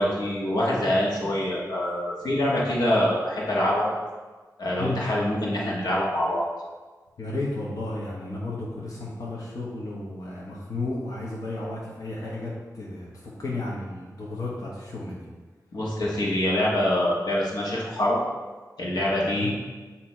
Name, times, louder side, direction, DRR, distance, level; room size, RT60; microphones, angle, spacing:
voice 1, 0.0-3.9 4.6-6.4 15.7-18.2 18.8-19.5, left 1 dB, 80° left, -5 dB, 1.4 m, -25 dB
voice 2, 7.2-15.2 19.1-19.5, left 2 dB, 55° left, -5 dB, 1.1 m, -33 dB
8.4 x 2.9 x 4.3 m, 1.3 s
wide cardioid pair, 120°, 7 cm